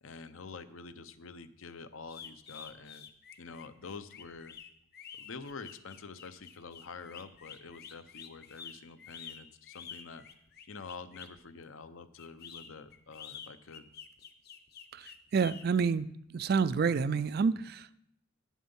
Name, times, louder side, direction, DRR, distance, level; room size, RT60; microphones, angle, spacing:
voice 1, 0.0-3.1 3.4-4.6 5.2-10.2 10.7-13.9, left 4 dB, 80° left, 12 dB, 0.7 m, -47 dB
sound 1, 2.1-11.4 12.2-15.6, left 7 dB, 50° left, 0.8 m, -49 dB
voice 2, 14.9-16.1 16.3-17.9, right 5 dB, 50° right, 16 dB, 0.3 m, -29 dB
9.6 x 7.3 x 5.4 m, 0.73 s
head